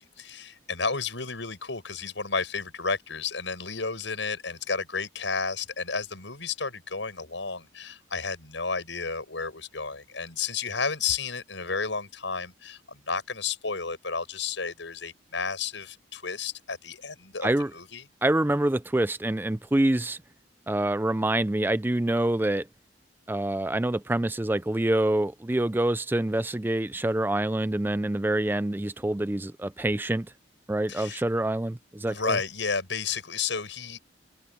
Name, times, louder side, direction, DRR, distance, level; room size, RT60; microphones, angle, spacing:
voice 1, 0.0-18.0 30.9-31.2 32.0-34.0, left 5 dB, 80° left, 6.2 m, -32 dB
voice 2, 18.2-20.2 20.7-22.7 23.3-30.3 30.7-32.4, right 1 dB, 10° right, 0.4 m, -26 dB
head